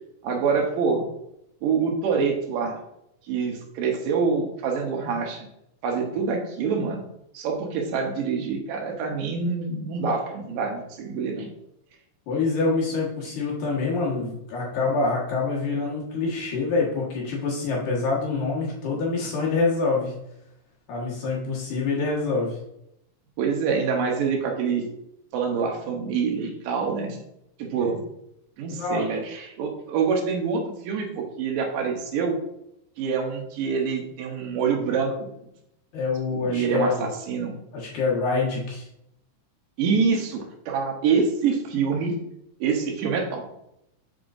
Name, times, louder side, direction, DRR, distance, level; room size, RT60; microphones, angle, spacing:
voice 1, 0.2-1.0 1.6-2.8 3.3-5.5 5.8-7.0 7.3-11.5 23.4-24.8 25.3-27.2 27.6-28.0 28.6-32.4 33.0-35.2 36.3-37.6 39.8-42.2 42.6-43.4, right 5 dB, 70° right, 1 dB, 2.4 m, -26 dB
voice 2, 12.3-20.1 20.9-22.6 27.8-27.9 28.7-29.0 35.9-37.1 37.7-38.9, left 3 dB, 60° left, -4 dB, 2.8 m, -26 dB
7.8 x 4.9 x 2.5 m, 0.81 s
omnidirectional pair, 4.3 m